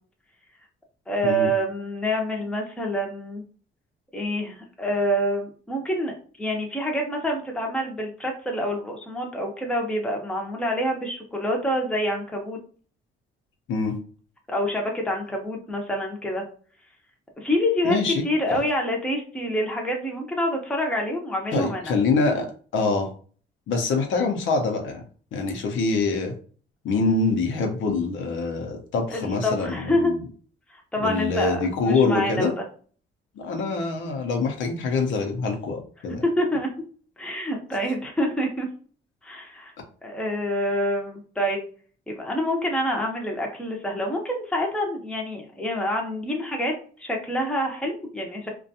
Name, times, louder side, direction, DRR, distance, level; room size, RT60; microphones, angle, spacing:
voice 1, 1.1-3.4 4.1-12.6 14.5-16.4 17.4-18.0 18.2-21.9 29.1-30.1 30.7-32.6 36.4-36.7 37.2-38.7 39.2-39.7 40.0-41.6 42.1-46.7 47.0-48.5, equal, 5° left, 0 dB, 0.7 m, -27 dB
voice 2, 17.8-18.2 18.5-18.6 21.5-23.1 23.7-25.0 25.3-26.3 26.8-30.2 31.0-32.5 33.4-36.2, left 4 dB, 75° left, 4 dB, 0.7 m, -25 dB
2.4 x 2.2 x 2.7 m, 0.42 s
cardioid pair, 90°, 20 cm